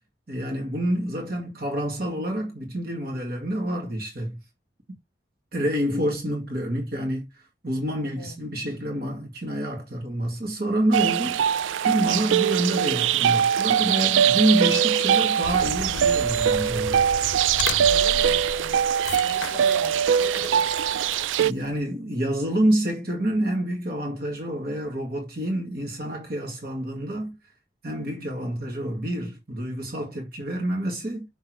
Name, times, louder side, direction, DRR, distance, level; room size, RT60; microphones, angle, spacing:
voice 1, 0.3-4.4 5.5-17.0 21.0-27.4 27.8-31.3, right 1 dB, 55° right, 2.0 m, -28 dB
voice 2, 8.0-8.4 17.8-18.9 19.2-20.6, left 1 dB, ahead, 4.2 m, -39 dB
sound 1, 10.9-21.5, right 8 dB, 80° right, 0.3 m, -22 dB
sound 2, 15.4-21.8, left 5 dB, 75° left, 0.6 m, -36 dB
6.2 x 3.4 x 4.6 m
head